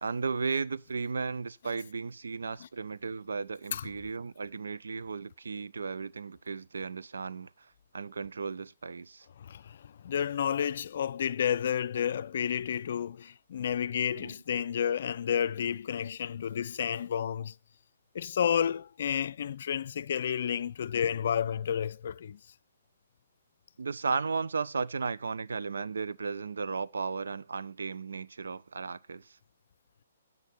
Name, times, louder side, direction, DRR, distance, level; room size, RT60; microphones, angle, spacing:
voice 1, 0.0-9.3 14.1-14.3 23.8-29.4, right 5 dB, 80° right, 0.5 m, -35 dB
voice 2, 9.4-17.5 18.1-22.4, left 8 dB, 60° left, 0.4 m, -31 dB
9.4 x 8.3 x 4.4 m
hypercardioid pair, 135°, 0 cm